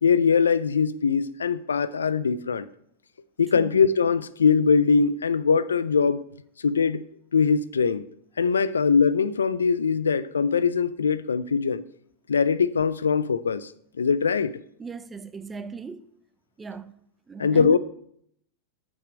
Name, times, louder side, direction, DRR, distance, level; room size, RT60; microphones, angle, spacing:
voice 1, 0.0-2.7 3.4-6.2 6.6-7.0 7.3-8.0 8.4-11.8 12.3-13.7 14.0-14.6 17.4-17.8, left 5 dB, 90° left, 0.4 m, -22 dB
voice 2, 14.8-16.1 16.6-16.9 17.3-17.8, right 5 dB, 15° right, 0.5 m, -38 dB
6.6 x 5.2 x 6.1 m
hypercardioid pair, 100°, 0 cm